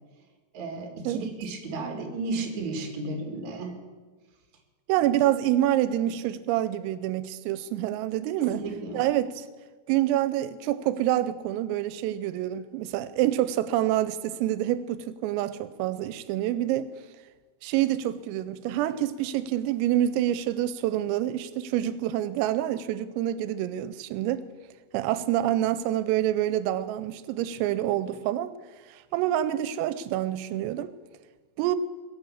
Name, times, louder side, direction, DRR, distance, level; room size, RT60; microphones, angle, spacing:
voice 1, 0.5-3.7 8.4-9.0, right 3 dB, 45° right, 2.8 m, -33 dB
voice 2, 4.9-8.7 8.9-9.5 9.9-16.9 17.6-24.4 24.9-28.5 28.9-30.9 31.6-31.8, right 13 dB, 85° right, 3.3 m, -27 dB
22.0 x 8.9 x 7.2 m
omnidirectional pair, 5.9 m